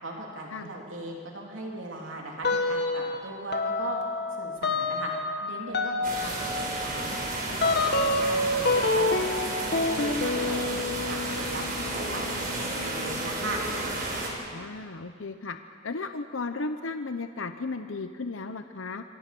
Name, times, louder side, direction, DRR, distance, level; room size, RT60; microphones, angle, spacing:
voice 1, 0.0-4.0 4.4-5.1 5.4-7.1 7.5-10.7 11.1-13.6, right 2 dB, 75° right, -1 dB, 3.6 m, -38 dB
sound 1, 2.4-3.2 3.5-13.9, left 2 dB, 55° left, 2.1 m, -29 dB
sound 2, 6.0-14.3, right 2 dB, 45° right, 5.1 m, -32 dB
voice 2, 14.5-15.6 15.8-19.0, left 3 dB, 85° left, 8 dB, 0.9 m, -35 dB
27.5 x 24.5 x 6.2 m, 2.2 s
head